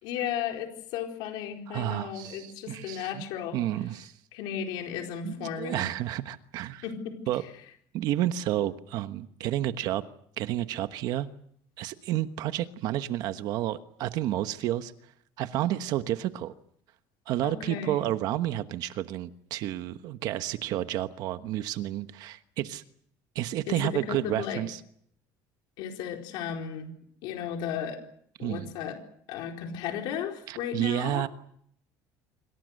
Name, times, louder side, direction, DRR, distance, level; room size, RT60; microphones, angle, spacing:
voice 1, 0.0-3.6 4.3-5.8 6.8-7.1 17.4-18.0 23.7-24.6 25.8-26.9 27.2-28.0 28.4-29.0 29.3-31.2, left 8 dB, 70° left, 3 dB, 4.4 m, -34 dB
voice 2, 1.7-3.2 3.5-4.1 5.2-6.8 7.3-7.4 7.9-10.0 10.4-11.3 11.8-14.9 15.4-16.5 17.3-22.8 23.3-24.8 28.4-28.7 30.5-31.3, right 13 dB, 60° right, 10 dB, 1.2 m, -30 dB
26.5 x 25.0 x 6.6 m, 0.66 s
cardioid pair, 170°, 8 cm